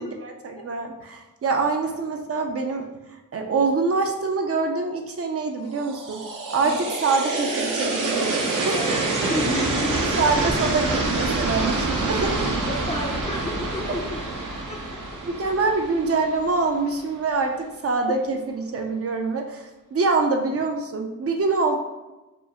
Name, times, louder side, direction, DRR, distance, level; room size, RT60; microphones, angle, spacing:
voice 1, 0.0-6.2 6.5-8.9 10.2-12.5 15.2-21.8, right 3 dB, 45° right, 3 dB, 0.5 m, -25 dB
sound 1, 5.8-16.8, right 2 dB, 75° right, 0.8 m, -26 dB
voice 2, 8.7-10.2 12.7-14.2 14.7-14.8, left 1 dB, 20° left, 0 dB, 0.4 m, -31 dB
5.0 x 2.4 x 2.9 m, 1.1 s
wide cardioid pair, 150°, 32 cm